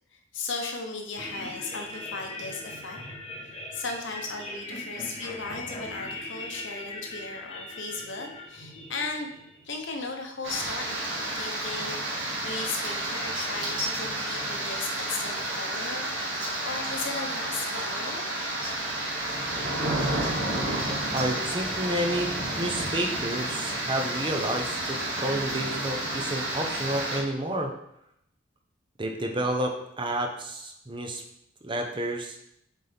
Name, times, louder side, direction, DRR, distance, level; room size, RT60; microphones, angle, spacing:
voice 1, 0.1-3.0 3.4-9.3 9.6-12.0 12.4-18.6, left 3 dB, 70° left, 2 dB, 1.1 m, -36 dB
sound 1, 1.2-10.5, left 1 dB, 30° left, 1.0 m, -40 dB
sound 2, 10.4-27.2, right 1 dB, 70° right, 1.9 m, -31 dB
voice 2, 21.1-27.7 29.0-31.2 31.6-32.4, right 1 dB, 25° right, 3 dB, 0.8 m, -30 dB
7.6 x 4.3 x 3.5 m, 0.77 s
head